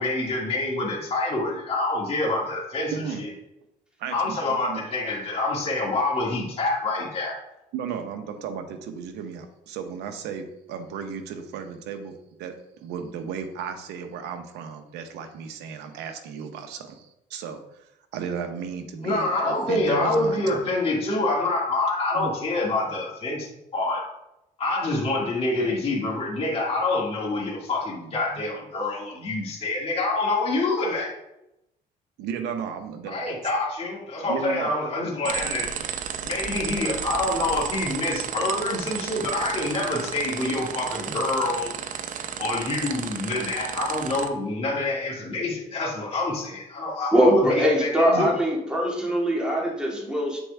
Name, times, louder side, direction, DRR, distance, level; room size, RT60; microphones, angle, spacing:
voice 1, 0.0-2.9 3.2-3.3 4.1-7.4 19.0-24.0 24.6-31.1 33.1-35.7 36.2-41.7 42.4-48.4, left 2 dB, 35° left, -3 dB, 1.9 m, -26 dB
voice 2, 2.9-3.2 4.0-4.8 7.7-12.5 12.8-20.6 22.1-22.3 32.2-33.2 34.3-34.7 35.0-35.1 35.5-35.6 48.1-48.3, right 6 dB, 90° right, 7 dB, 0.9 m, -34 dB
sound 1, 35.2-44.3, right 8 dB, 50° right, 0.6 m, -33 dB
voice 3, 47.1-50.4, equal, 5° right, -3 dB, 1.9 m, -22 dB
7.8 x 4.5 x 3.4 m, 0.86 s
cardioid pair, 110°, 17 cm